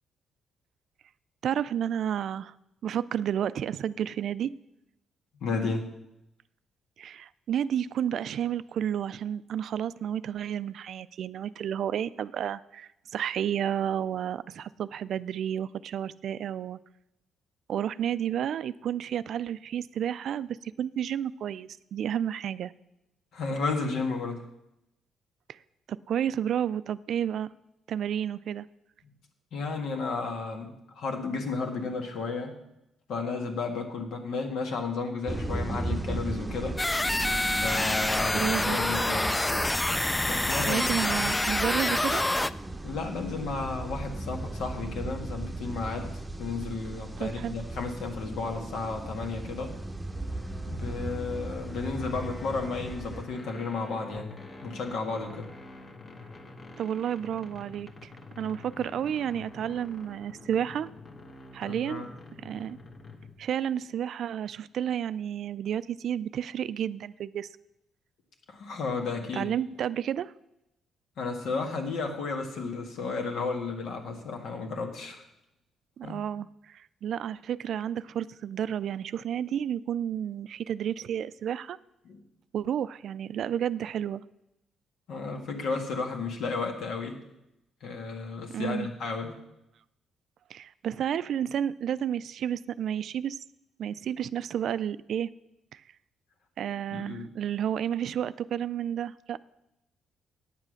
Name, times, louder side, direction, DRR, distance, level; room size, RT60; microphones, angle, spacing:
voice 1, 1.4-2.5 2.8-4.5 7.0-16.8 17.7-22.7 25.9-27.5 27.9-28.7 37.8-37.9 38.3-38.8 40.7-42.2 47.2-47.6 56.8-58.1 58.4-60.9 61.5-62.0 62.4-62.8 63.4-67.5 69.3-70.3 76.0-81.8 82.5-84.2 88.5-88.9 90.5-93.4 93.8-95.3 95.7-95.8 96.6-99.4, right 9 dB, 70° right, 16 dB, 0.3 m, -31 dB
voice 2, 5.4-5.9 23.3-24.4 29.5-32.5 33.1-36.8 37.6-39.4 40.1-40.8 42.8-49.7 50.7-54.3 54.6-55.5 61.6-62.1 68.5-69.5 71.2-75.2 76.0-76.2 82.0-82.2 85.1-87.2 87.8-89.3 96.9-97.3, left 4 dB, 75° left, 3 dB, 1.8 m, -33 dB
sound 1, 35.3-53.2, right 2 dB, 15° right, 0.8 m, -37 dB
sound 2, 36.8-42.5, left 1 dB, 15° left, 0.3 m, -27 dB
sound 3, 50.1-63.5, left 3 dB, 40° left, 1.4 m, -47 dB
9.2 x 7.4 x 6.4 m, 0.85 s
cardioid pair, 90°, 0 cm